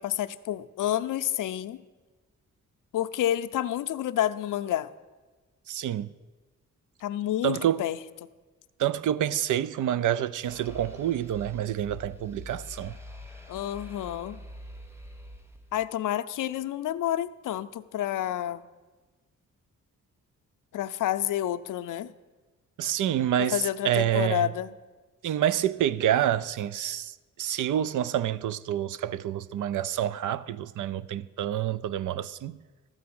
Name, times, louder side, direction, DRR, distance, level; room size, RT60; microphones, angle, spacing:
voice 1, 0.0-1.8 2.9-4.9 7.0-8.0 13.5-14.4 15.7-18.6 20.7-22.1 23.4-24.7, left 12 dB, 85° left, 0.5 m, -29 dB
voice 2, 5.7-6.1 7.4-7.8 8.8-13.0 22.8-24.5 25.2-27.1 27.4-32.6, right 11 dB, 75° right, 0.5 m, -28 dB
sound 1, 10.5-16.0, left 1 dB, 10° right, 1.0 m, -45 dB
13.0 x 4.8 x 8.6 m
cardioid pair, 95°, 31 cm